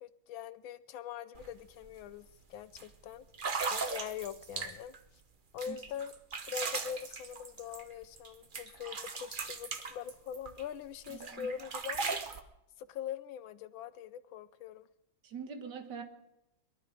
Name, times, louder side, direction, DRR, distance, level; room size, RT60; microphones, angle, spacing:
voice 1, 0.0-3.3 3.7-5.0 5.5-6.1 6.5-12.2 12.8-14.9, left 8 dB, 80° left, 14 dB, 1.5 m, -43 dB
sound 1, 1.3-1.5 1.8-2.1 2.8-2.9 3.3-5.0 5.6-8.3 8.5-10.6 11.0-12.4, right 4 dB, 40° right, 0.7 m, -38 dB
voice 2, 11.1-11.5 15.2-16.0, right 6 dB, 60° right, 7 dB, 2.0 m, -43 dB
22.5 x 12.5 x 5.1 m, 0.90 s
omnidirectional pair, 2.2 m